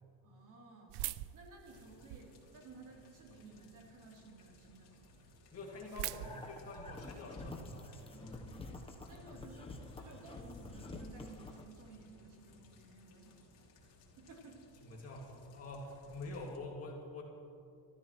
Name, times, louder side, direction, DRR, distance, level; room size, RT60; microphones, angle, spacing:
voice 1, 0.2-5.4 8.1-14.7, right 3 dB, 40° right, -2 dB, 3.3 m, -56 dB
sound 1, 0.9-2.4 3.0-3.6 4.1-4.2 4.4-4.5 4.9-5.0 5.2-7.2, right 16 dB, 55° right, 0.5 m, -43 dB
sound 2, 1.7-16.6, left 2 dB, 50° left, 2.8 m, -63 dB
voice 2, 5.5-7.9 9.4-9.5 14.8-17.2, left 2 dB, 30° left, -1 dB, 2.3 m, -46 dB
sound 3, 6.2-11.6, left 3 dB, 10° left, 0.9 m, -49 dB
28.5 x 13.5 x 3.1 m, 2.4 s
cardioid pair, 150°, 47 cm